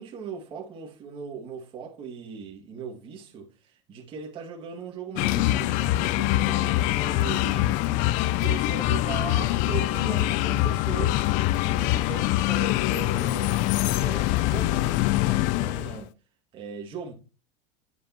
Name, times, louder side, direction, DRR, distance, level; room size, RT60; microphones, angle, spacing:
voice 1, 0.0-7.8 8.4-11.4 11.6-16.1 16.5-17.1, right 6 dB, 35° right, 2.1 m, -39 dB
sound 1, 5.2-16.0, left 16 dB, 55° left, 0.4 m, -24 dB
9.5 x 7.2 x 2.9 m
supercardioid pair, 135°, 16 cm